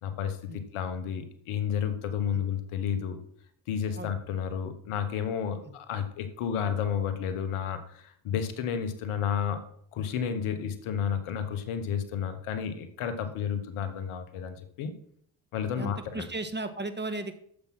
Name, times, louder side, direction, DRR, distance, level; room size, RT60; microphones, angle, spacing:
voice 1, 0.0-3.2 3.7-9.6 9.9-14.9 15.5-16.3, left 8 dB, 90° left, 9 dB, 1.3 m, -31 dB
voice 2, 15.8-17.4, right 2 dB, 20° right, 8 dB, 1.8 m, -35 dB
10.0 x 7.2 x 6.0 m, 0.67 s
supercardioid pair, 40°, 49 cm